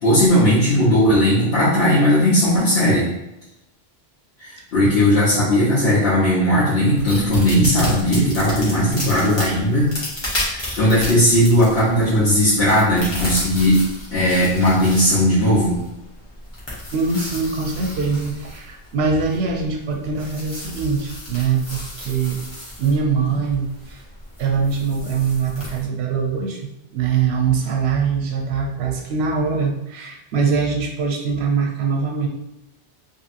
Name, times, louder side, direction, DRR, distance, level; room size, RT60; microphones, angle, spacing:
voice 1, 0.0-3.1 4.4-9.9 10.4-13.8 14.1-15.8, equal, 75° left, -11 dB, 1.2 m, -17 dB
sound 1, 7.0-25.8, left 1 dB, 25° left, 0.9 m, -33 dB
voice 2, 16.9-22.4 22.8-24.0 24.4-26.6 26.9-32.3, right 5 dB, 85° right, 2 dB, 0.8 m, -22 dB
2.8 x 2.8 x 2.5 m, 0.90 s
omnidirectional pair, 1.1 m